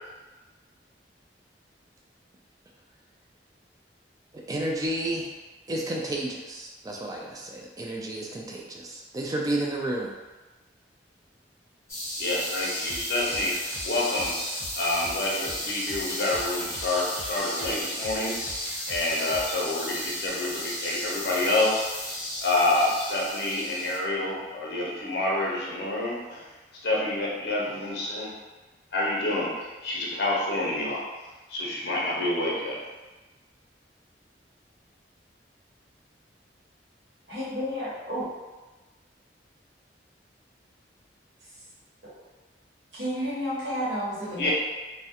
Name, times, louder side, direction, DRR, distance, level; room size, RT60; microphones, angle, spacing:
voice 1, 4.3-5.3 5.7-10.1, right 1 dB, 20° right, -1 dB, 0.3 m, -31 dB
sound 1, 11.9-24.0, left 1 dB, 15° left, 0.8 m, -34 dB
voice 2, 12.2-13.5 13.8-14.3 14.7-18.4 18.9-26.5 26.8-28.3 28.9-31.0 31.5-32.8 44.4-44.5, left 2 dB, 60° left, -4 dB, 0.6 m, -28 dB
sound 2, 12.9-19.7, equal, 45° right, 0.9 m, -43 dB
voice 3, 37.3-38.3 42.0-42.2 42.9-44.5, equal, 85° right, -9 dB, 1.1 m, -31 dB
2.3 x 2.1 x 2.8 m, 1.2 s
head